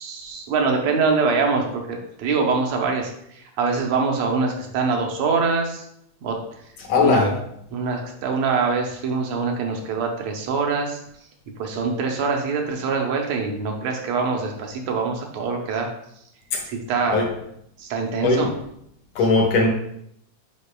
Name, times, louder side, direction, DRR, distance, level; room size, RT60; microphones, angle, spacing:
voice 1, 0.0-5.8 6.2-6.4 7.0-7.4 7.7-11.0 11.6-15.9 16.7-17.2 17.8-18.5, right 4 dB, 70° right, 2 dB, 1.8 m, -24 dB
voice 2, 6.9-7.3 16.5-16.6 17.1-17.3 18.2-18.5 19.2-19.7, left 3 dB, 65° left, 0 dB, 1.8 m, -18 dB
8.5 x 5.2 x 2.2 m, 0.74 s
omnidirectional pair, 3.6 m